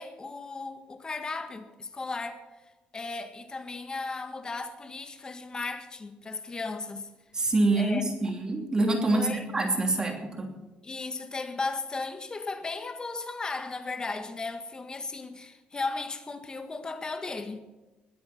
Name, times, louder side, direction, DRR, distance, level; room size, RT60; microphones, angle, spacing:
voice 1, 0.0-2.4 2.9-7.1 7.7-8.1 9.1-9.5 10.8-17.6, left 3 dB, 25° left, 1.7 m, -36 dB
voice 2, 7.3-10.5, right 2 dB, 25° right, 2.9 m, -26 dB
21.5 x 8.9 x 6.1 m
cardioid pair, 110°, 3 cm